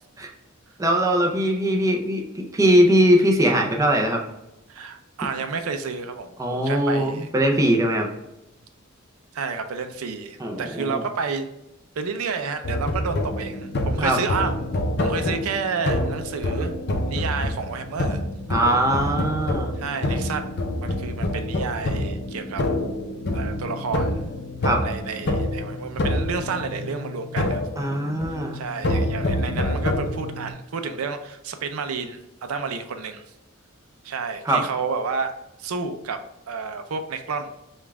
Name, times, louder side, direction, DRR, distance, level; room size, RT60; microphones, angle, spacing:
voice 1, 0.8-2.2 2.5-4.2 6.4-8.1 10.4-11.0 14.0-14.2 18.5-19.7 24.6-24.8 27.8-28.6 34.5-34.6, equal, 15° right, 1 dB, 0.5 m, -20 dB
voice 2, 4.7-7.3 9.3-11.5 12.0-14.5 15.0-16.7 17.1-18.2 19.8-20.4 20.8-22.6 23.3-24.3 24.8-27.6 28.5-32.2 32.5-33.2 34.0-35.3 35.6-36.2 36.5-37.5, right 5 dB, 75° right, 8 dB, 0.4 m, -30 dB
sound 1, 12.6-30.5, left 1 dB, 50° left, 0.6 m, -27 dB
5.2 x 2.3 x 3.4 m, 0.92 s
head